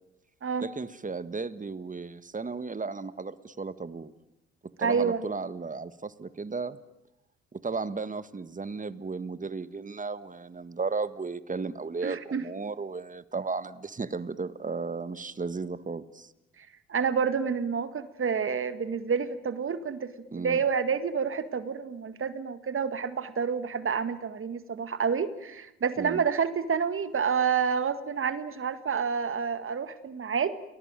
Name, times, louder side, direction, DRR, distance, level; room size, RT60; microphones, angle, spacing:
voice 1, 0.6-4.1 4.8-6.8 7.5-16.3 20.3-20.6 26.0-26.2, right 4 dB, 25° right, 14 dB, 1.6 m, -35 dB
voice 2, 4.8-5.3 12.0-12.4 16.9-30.5, right 6 dB, 45° right, 12 dB, 1.9 m, -29 dB
29.5 x 20.0 x 9.1 m, 0.89 s
hypercardioid pair, 55°, 30 cm